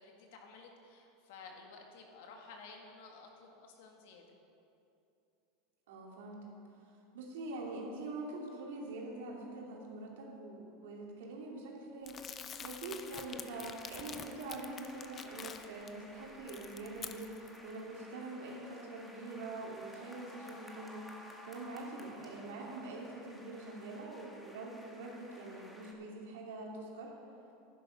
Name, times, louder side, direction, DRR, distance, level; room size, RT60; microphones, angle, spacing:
voice 1, 0.0-4.3, left 4 dB, 75° left, 2 dB, 1.9 m, -53 dB
voice 2, 5.9-6.4 7.1-12.2 12.6-21.0 21.4-27.1, right 2 dB, 85° right, -2 dB, 2.8 m, -44 dB
Crumpling crinkling, 12.1-15.9 16.3-17.6, left 7 dB, 25° left, 0.6 m, -47 dB
sound 1, 13.0-25.9, equal, 5° left, 1.4 m, -55 dB
11.0 x 10.5 x 5.4 m, 2.7 s
supercardioid pair, 140°, 0 cm